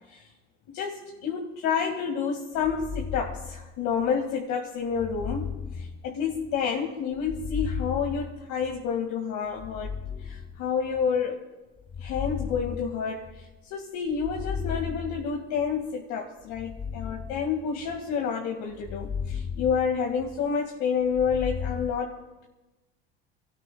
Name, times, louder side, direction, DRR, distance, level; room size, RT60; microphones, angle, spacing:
voice 1, 0.7-9.9 10.2-11.4 12.0-22.2, left 6 dB, 65° left, 0 dB, 2.1 m, -29 dB
sound 1, 2.6-4.1 4.9-6.6 7.2-8.9 9.6-11.1 11.8-13.6 14.1-15.7 16.5-18.2 18.7-20.5 21.0-21.9, left 6 dB, 15° left, 0.5 m, -36 dB
29.5 x 18.0 x 2.3 m, 1.1 s
hypercardioid pair, 85°, 31 cm